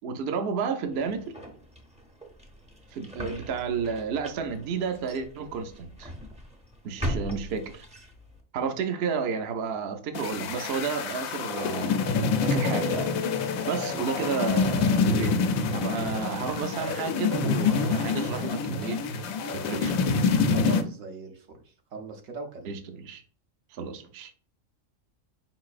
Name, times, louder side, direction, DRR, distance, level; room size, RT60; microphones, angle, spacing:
voice 1, 0.0-1.2 2.9-6.1 6.8-7.9 8.5-13.1 13.4-20.0 22.7-23.2 23.7-24.3, right 6 dB, 60° right, 0.7 m, -32 dB
sound 1, 0.9-8.4, equal, 10° right, 0.4 m, -39 dB
sound 2, 10.1-20.8, left 5 dB, 85° left, 1.0 m, -26 dB
voice 2, 20.5-22.8, right 3 dB, 80° right, 1.2 m, -39 dB
4.6 x 3.9 x 2.4 m
omnidirectional pair, 1.4 m